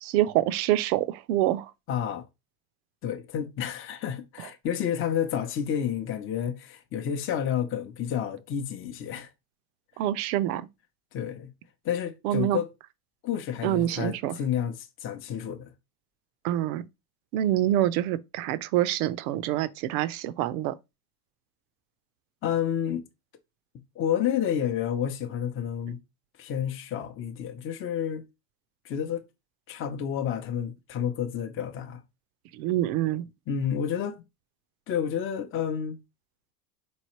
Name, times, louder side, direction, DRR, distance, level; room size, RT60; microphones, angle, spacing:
voice 1, 0.0-1.7 4.4-4.5 10.0-10.7 12.2-12.6 13.6-14.4 16.4-16.8 17.3-20.8 32.5-33.2, right 13 dB, 65° right, 0.6 m, -26 dB
voice 2, 1.9-2.2 3.0-9.3 11.1-11.5 11.8-12.7 13.2-15.7 22.4-23.1 24.0-26.0 26.4-28.3 28.8-29.2 29.7-32.0 33.5-34.2 34.9-36.0, left 9 dB, 25° left, 0.6 m, -30 dB
4.0 x 3.1 x 2.9 m
hypercardioid pair, 95°, 48 cm